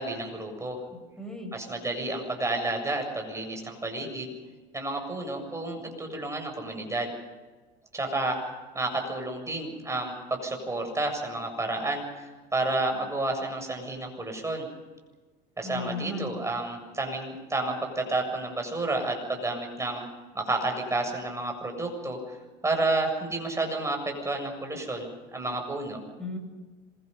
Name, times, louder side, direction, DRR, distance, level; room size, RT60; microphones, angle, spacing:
voice 1, 0.0-0.8 1.5-4.3 4.7-7.1 7.9-8.4 8.7-14.6 15.6-20.0 20.3-22.4 22.6-26.0, right 2 dB, 15° right, 3 dB, 7.4 m, -31 dB
voice 2, 0.9-1.5 15.6-16.3 26.2-26.4, left 2 dB, 5° left, 3 dB, 8.0 m, -35 dB
26.5 x 23.0 x 5.6 m, 1.3 s
supercardioid pair, 105°, 21 cm